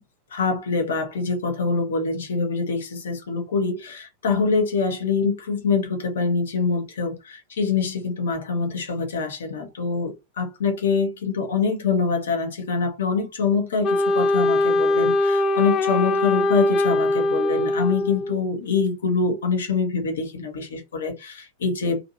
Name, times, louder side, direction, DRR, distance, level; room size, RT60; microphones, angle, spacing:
voice 1, 0.3-22.0, left 4 dB, 65° left, 0.9 m, -25 dB
Wind instrument woodwind instrument, 13.8-18.4, left 2 dB, 30° left, 0.3 m, -21 dB
2.7 x 2.5 x 2.5 m
figure-of-eight pair, 90°, 0 cm